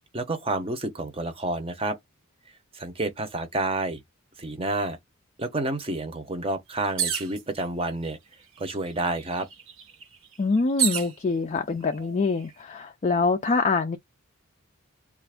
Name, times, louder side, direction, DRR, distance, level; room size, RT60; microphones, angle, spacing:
voice 1, 0.1-2.0 2.7-4.0 4.4-5.0 5.4-8.2 8.6-9.5, right 2 dB, 25° right, 0.7 m, -29 dB
sound 1, 7.0-7.4 8.3-8.4 8.7-11.1 11.9-12.4, right 8 dB, 65° right, 1.0 m, -29 dB
voice 2, 10.4-14.0, left 4 dB, 30° left, 0.3 m, -25 dB
3.4 x 2.5 x 3.4 m
head